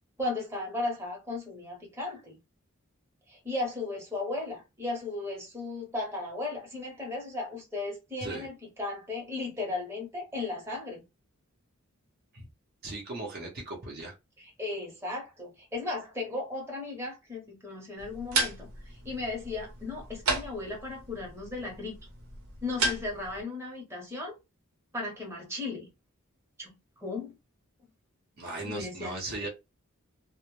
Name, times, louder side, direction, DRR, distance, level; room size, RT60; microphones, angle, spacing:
voice 1, 0.2-2.4 3.3-11.0 14.4-22.0 22.6-24.3 24.9-25.9 26.6-27.3 28.6-29.2, left 2 dB, 10° right, 0.7 m, -36 dB
voice 2, 12.8-14.1 28.4-29.5, right 2 dB, 45° right, 0.6 m, -37 dB
sound 1, 18.0-23.4, right 3 dB, 90° right, 0.8 m, -34 dB
2.0 x 2.0 x 3.0 m
head